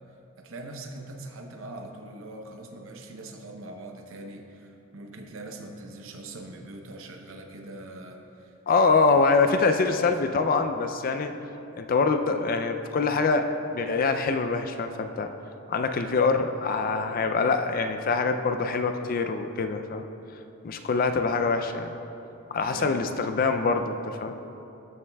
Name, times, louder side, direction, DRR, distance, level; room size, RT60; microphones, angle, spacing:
voice 1, 0.4-10.0 22.6-23.2, right 2 dB, 65° right, 4 dB, 0.7 m, -42 dB
voice 2, 8.7-11.3 11.8-15.3 15.7-20.0 20.6-21.9 22.5-24.4, left 4 dB, 40° left, 7 dB, 0.3 m, -24 dB
13.0 x 7.2 x 2.3 m, 2.9 s
head